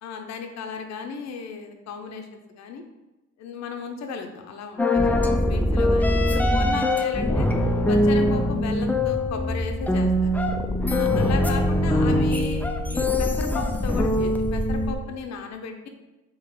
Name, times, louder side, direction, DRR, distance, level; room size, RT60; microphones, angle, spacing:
voice 1, 0.0-2.8 3.4-7.5 7.9-10.3 10.9-15.9, left 5 dB, 60° left, 4 dB, 0.6 m, -35 dB
sound 1, 4.8-14.9, left 1 dB, 5° left, 0.3 m, -22 dB
3.7 x 2.9 x 4.6 m, 1.0 s
cardioid pair, 90°, 30 cm